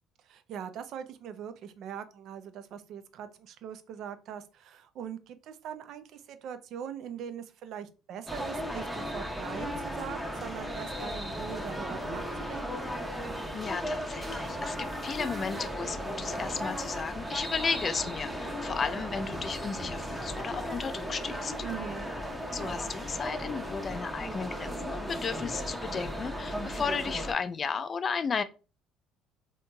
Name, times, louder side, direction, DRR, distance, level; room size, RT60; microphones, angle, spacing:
voice 1, 0.2-12.9 21.6-22.1, right 8 dB, 65° right, 0.4 m, -41 dB
sound 1, 8.3-27.3, equal, 5° right, 0.7 m, -36 dB
voice 2, 13.5-21.5 22.5-28.4, left 5 dB, 40° left, 0.3 m, -34 dB
2.9 x 2.8 x 2.2 m
supercardioid pair, 70°, 0 cm